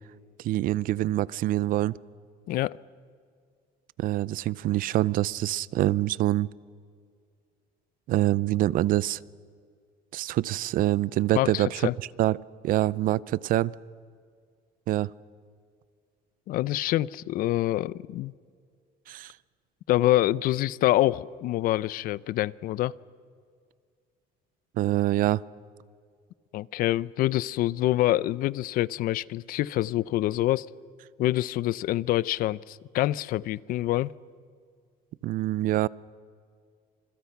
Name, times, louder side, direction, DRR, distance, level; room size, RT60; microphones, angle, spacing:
voice 1, 0.4-2.0 4.0-6.5 8.1-9.2 10.1-11.8 12.2-12.4 12.6-13.7 14.9-15.1 19.1-19.3 24.8-25.4 35.2-35.9, right 15 dB, 55° right, 0.5 m, -25 dB
voice 2, 11.3-11.9 16.5-18.3 19.9-22.9 26.5-30.7 31.2-34.1, left 15 dB, 60° left, 0.6 m, -26 dB
29.5 x 27.0 x 5.9 m
cardioid pair, 140°, 17 cm